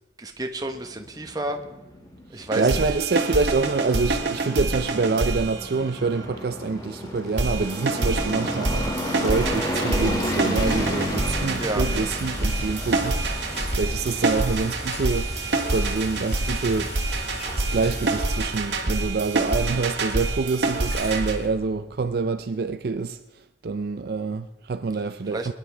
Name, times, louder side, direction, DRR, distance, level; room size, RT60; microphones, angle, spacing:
voice 1, 0.2-1.6 2.3-2.8 11.6-11.8 25.3-25.5, right 1 dB, 20° right, 1.0 m, -30 dB
sound 1, 0.6-20.0, equal, 20° left, 1.8 m, -34 dB
voice 2, 2.3-15.3 15.7-16.9 17.6-23.2 23.6-25.5, right 4 dB, 55° right, 0.4 m, -26 dB
sound 2, 2.5-6.2 7.4-21.4, right 2 dB, 80° right, 1.6 m, -27 dB
Bicycle, 9.1-22.2, equal, 40° left, 4.4 m, -37 dB
21.0 x 10.5 x 3.4 m
head